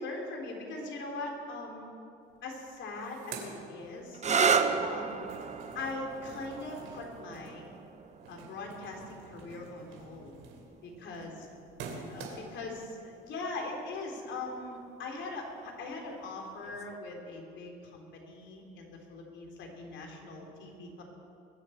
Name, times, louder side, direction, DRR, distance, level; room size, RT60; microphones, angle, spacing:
voice 1, 0.0-1.9 2.4-4.2 4.8-5.2 5.7-7.7 8.3-10.3 10.8-11.3 12.1-21.0, left 3 dB, 65° left, 1 dB, 3.8 m, -41 dB
sound 1, 2.3-2.4 2.7-4.4 4.8-12.7, right 4 dB, 75° right, 2.9 m, -48 dB
sound 2, 4.1-11.6 12.6-13.1 16.6-17.0, right 5 dB, 35° right, 1.0 m, -33 dB
21.5 x 7.5 x 8.1 m, 2.6 s
supercardioid pair, 80°, 21 cm